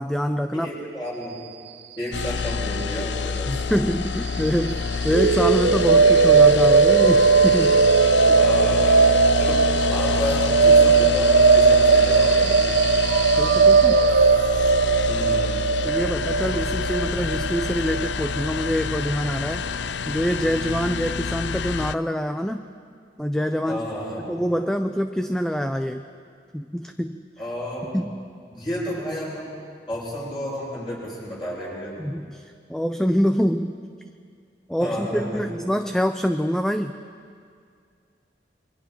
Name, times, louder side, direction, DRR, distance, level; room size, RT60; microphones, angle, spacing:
voice 1, 0.0-0.7 3.5-7.8 8.2-8.4 13.4-14.0 15.8-19.6 20.1-22.6 23.2-23.8 24.2-26.0 26.5-27.2 27.9-28.3 32.0-33.8 34.7-37.0, equal, 5° left, 7 dB, 0.5 m, -25 dB
voice 2, 0.5-1.4 2.0-3.6 8.3-12.8 15.0-15.6 23.6-24.4 27.4-28.0 28.5-29.5 29.9-32.0 34.8-35.4, equal, 25° left, -7 dB, 7.9 m, -31 dB
sound 1, 2.1-22.0, left 5 dB, 85° left, 0.5 m, -28 dB
sound 2, 5.1-19.1, right 4 dB, 85° right, 0.8 m, -18 dB
28.5 x 23.0 x 4.6 m, 2.2 s
head